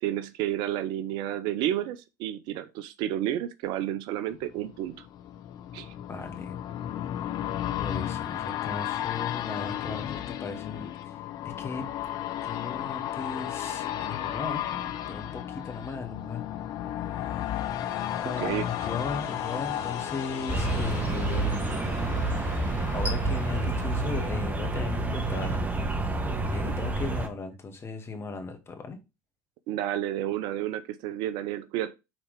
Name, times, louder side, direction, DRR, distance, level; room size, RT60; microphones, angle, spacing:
voice 1, 0.0-4.9 5.7-5.9 18.3-18.7 26.7-26.8 29.7-31.9, right 12 dB, 60° right, 0.7 m, -31 dB
sound 1, 4.4-22.2 22.6-22.7, left 11 dB, 50° left, 0.8 m, -34 dB
voice 2, 6.1-6.6 7.8-11.9 12.4-16.4 17.9-21.8 22.9-25.6 26.5-29.0, left 4 dB, 30° left, 2.1 m, -37 dB
sound 2, 16.3-24.5, left 3 dB, 70° left, 2.3 m, -44 dB
sound 3, 20.5-27.3, right 2 dB, 20° right, 1.6 m, -28 dB
6.1 x 4.3 x 5.1 m
hypercardioid pair, 75°, 9 cm